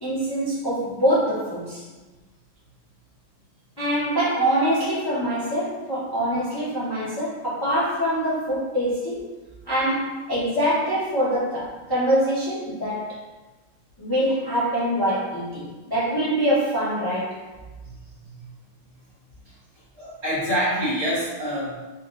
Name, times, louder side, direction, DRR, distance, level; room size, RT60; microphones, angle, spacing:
voice 1, 0.0-1.8 3.8-9.3 9.7-13.2 14.0-17.4, equal, 30° left, -10 dB, 0.4 m, -24 dB
voice 2, 17.8-18.5 19.4-19.6 19.9-21.9, equal, 40° right, -9 dB, 1.2 m, -27 dB
6.3 x 2.4 x 2.4 m, 1.2 s
omnidirectional pair, 2.2 m